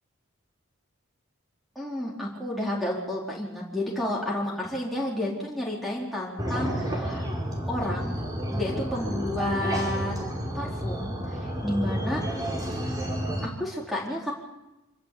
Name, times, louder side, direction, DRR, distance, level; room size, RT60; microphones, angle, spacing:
voice 1, 1.8-7.3 7.7-8.2 8.5-10.2 10.5-12.2 13.4-14.3, left 1 dB, ahead, -3 dB, 4.0 m, -31 dB
sound 1, 6.4-13.5, equal, 20° right, 4.5 m, -30 dB
26.0 x 13.5 x 8.6 m, 0.97 s
head